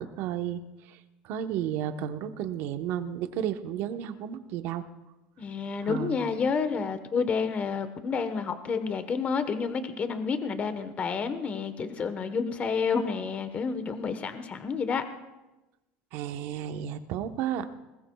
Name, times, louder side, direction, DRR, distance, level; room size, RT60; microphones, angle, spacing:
voice 1, 0.0-4.9 5.8-6.2 16.1-17.7, right 10 dB, 60° right, 8 dB, 1.1 m, -33 dB
voice 2, 5.4-15.0, left 5 dB, 30° left, 9 dB, 1.2 m, -29 dB
20.5 x 20.0 x 2.4 m, 1.1 s
supercardioid pair, 115°, 4 cm